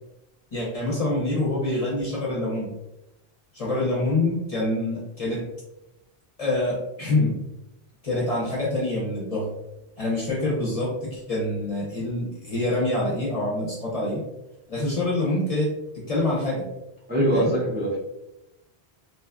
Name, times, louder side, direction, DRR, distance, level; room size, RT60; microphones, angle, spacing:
voice 1, 0.5-2.7 3.5-5.4 6.4-7.4 8.0-9.5 10.0-14.3 14.7-16.7 17.3-17.5, left 2 dB, 45° left, -3 dB, 0.6 m, -26 dB
voice 2, 17.1-18.0, right 1 dB, 15° right, -5 dB, 0.4 m, -23 dB
2.7 x 2.4 x 2.3 m, 0.90 s
omnidirectional pair, 1.1 m